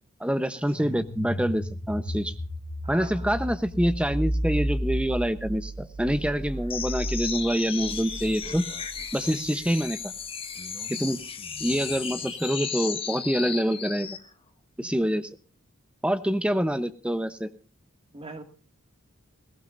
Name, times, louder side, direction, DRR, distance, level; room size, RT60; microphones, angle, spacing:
voice 1, 0.2-2.3 2.9-8.6 9.1-10.1 10.9-11.2 11.6-14.1 14.8-15.3 16.0-17.5, equal, 5° right, 11 dB, 0.9 m, -26 dB
sound 1, 0.7-9.4, equal, 85° left, 4.8 m, -33 dB
voice 2, 2.8-3.3 18.1-18.4, right 3 dB, 25° right, 5 dB, 2.2 m, -41 dB
sound 2, 6.7-14.3, left 6 dB, 25° left, 1.6 m, -35 dB
21.0 x 17.5 x 2.6 m, 0.36 s
head